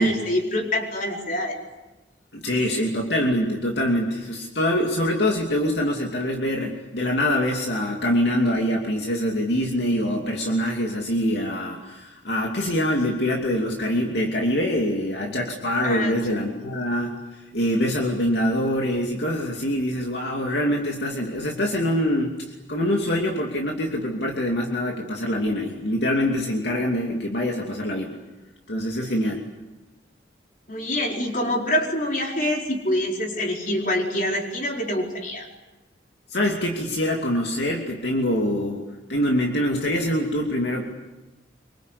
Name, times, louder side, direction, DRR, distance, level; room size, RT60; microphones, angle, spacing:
voice 1, 0.0-1.6 15.8-16.4 30.7-35.5, left 1 dB, 45° left, 0 dB, 4.8 m, -25 dB
voice 2, 2.3-17.1 17.5-22.3 22.7-28.2 28.7-29.4 36.3-38.8 39.1-40.9, equal, 70° left, 0 dB, 2.7 m, -24 dB
25.5 x 24.0 x 8.4 m, 1.1 s
head